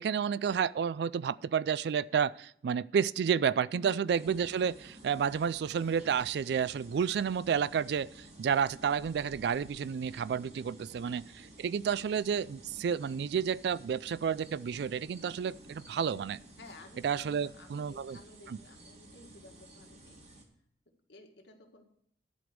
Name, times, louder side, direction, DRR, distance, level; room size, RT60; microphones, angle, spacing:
voice 1, 0.0-8.1 8.4-11.2 11.6-16.4 17.0-18.2 18.5-18.6, right 7 dB, 65° right, 20 dB, 0.3 m, -30 dB
voice 2, 3.7-4.2 10.9-11.2 16.6-20.2 21.1-21.8, left 1 dB, 80° left, 2 dB, 1.9 m, -54 dB
sound 1, 4.1-20.4, right 1 dB, 40° right, 1.9 m, -53 dB
11.0 x 5.1 x 7.8 m, 0.70 s
head